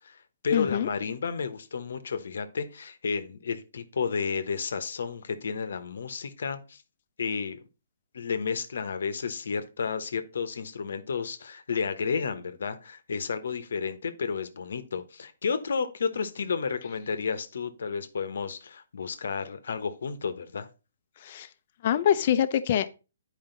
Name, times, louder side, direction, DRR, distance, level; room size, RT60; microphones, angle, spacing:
voice 1, 0.0-6.8 7.2-7.6 8.1-20.7, left 5 dB, 70° left, 1.0 m, -32 dB
voice 2, 0.5-0.9 21.2-21.5 21.8-22.9, left 10 dB, 45° left, 0.7 m, -24 dB
9.0 x 5.0 x 3.9 m
hypercardioid pair, 150°, 0 cm